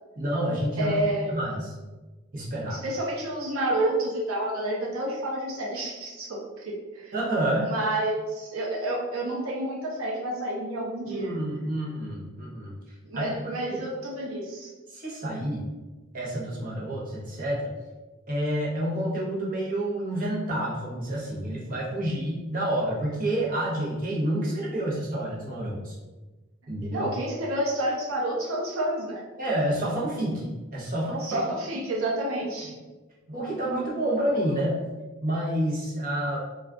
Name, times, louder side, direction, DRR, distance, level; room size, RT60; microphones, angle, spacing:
voice 1, 0.2-0.9 1.3-1.7 2.3-2.8 7.1-7.7 11.1-12.7 13.1-13.8 14.9-15.7 16.1-17.6 18.3-25.9 26.7-27.1 29.4-31.4 32.4-32.5 33.3-34.8 35.2-36.4, right 1 dB, 45° right, -5 dB, 0.8 m, -29 dB
voice 2, 0.8-1.3 2.7-7.1 7.6-11.3 13.0-14.7 26.9-29.2 31.2-32.7, right 1 dB, 85° right, -2 dB, 0.5 m, -29 dB
2.3 x 2.3 x 3.5 m, 1.2 s
head